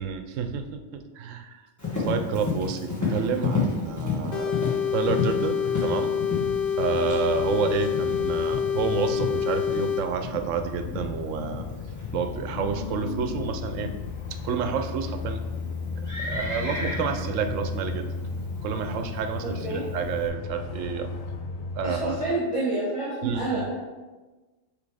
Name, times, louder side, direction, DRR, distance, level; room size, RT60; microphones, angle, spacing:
voice 1, 0.0-1.6 2.0-4.5 4.9-6.2 6.8-11.7 12.1-13.9 14.3-15.4 16.2-18.1 18.6-21.1 21.7-22.2 23.2-23.7, right 6 dB, 85° right, 7 dB, 1.0 m, -29 dB
Livestock farm animals working animals, 1.8-20.3, left 4 dB, 15° left, 1.4 m, -33 dB
sound 1, 4.3-10.0, left 7 dB, 55° left, 0.7 m, -26 dB
sound 2, 10.5-22.3, left 5 dB, 90° left, 0.3 m, -35 dB
voice 2, 19.4-19.8 21.8-23.7, right 2 dB, 25° right, -6 dB, 1.3 m, -28 dB
6.1 x 3.3 x 4.9 m, 1.2 s
omnidirectional pair, 1.3 m